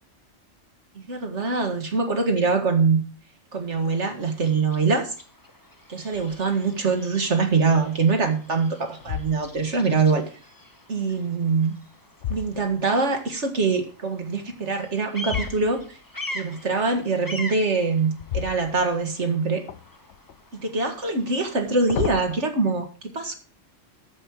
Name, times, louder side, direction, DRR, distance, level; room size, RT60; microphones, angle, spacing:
voice 1, 1.1-3.0 3.5-5.1 5.9-10.2 10.9-11.7 12.3-16.0 16.3-19.6 20.5-23.3, right 4 dB, 60° right, 5 dB, 2.3 m, -23 dB
Bird vocalization bird call bird song, 3.6-22.3, left 1 dB, 15° left, 1.3 m, -43 dB
sound 1, 6.1-6.6 7.1-7.2 7.8-8.4 8.9-9.8 11.5-13.2 15.2-16.1 18.1-19.3 19.7-20.4 21.5-22.3, left 10 dB, 65° left, 1.0 m, -34 dB
13.5 x 5.6 x 6.3 m, 0.38 s
omnidirectional pair, 1.3 m